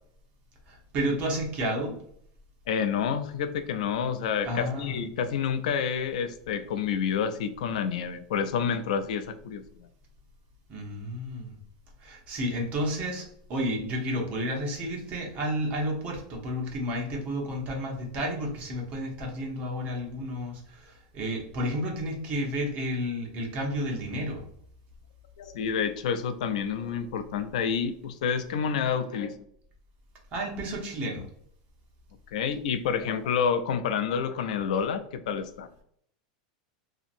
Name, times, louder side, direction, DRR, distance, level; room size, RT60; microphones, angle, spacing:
voice 1, 0.7-2.0 4.4-5.0 10.7-11.6 12.0-24.4 30.3-31.3, equal, 40° right, 0 dB, 0.9 m, -31 dB
voice 2, 2.7-9.9 25.4-29.3 32.3-35.7, left 7 dB, 80° left, 10 dB, 0.4 m, -29 dB
2.8 x 2.6 x 2.5 m, 0.66 s
supercardioid pair, 130°, 4 cm